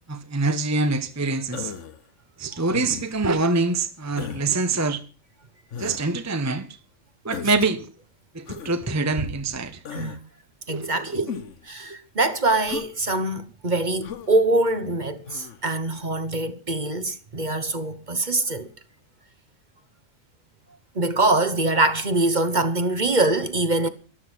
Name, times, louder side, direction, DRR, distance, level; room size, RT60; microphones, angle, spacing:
voice 1, 0.1-1.7 2.4-5.0 5.8-6.8 7.2-7.9 8.3-9.8 10.7-11.4, right 3 dB, 15° right, 0.9 m, -25 dB
Human voice, 1.5-2.0 2.7-3.2 4.2-4.5 5.7-6.0 7.3-7.6 8.5-8.8 9.8-10.2 11.3-11.6 12.7-12.9 14.0-14.3 15.3-15.6, left 7 dB, 65° left, 1.4 m, -35 dB
voice 2, 10.7-11.2 11.7-18.7 20.9-23.9, right 2 dB, 35° right, 1.3 m, -23 dB
13.5 x 12.0 x 6.3 m
omnidirectional pair, 1.4 m